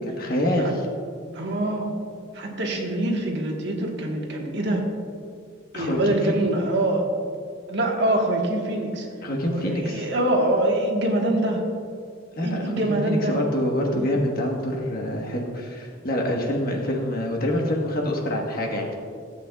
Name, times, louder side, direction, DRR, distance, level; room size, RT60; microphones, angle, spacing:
voice 1, 0.1-0.7 5.7-6.2 9.2-10.1 12.3-12.6 13.1-18.9, left 1 dB, 45° left, 0 dB, 1.4 m, -26 dB
voice 2, 1.3-1.9 2.3-4.8 5.7-7.1 7.7-9.1 9.5-11.6 12.4-13.4 13.8-14.1, right 1 dB, 55° right, 0 dB, 1.4 m, -24 dB
16.5 x 8.2 x 2.4 m, 2.2 s
head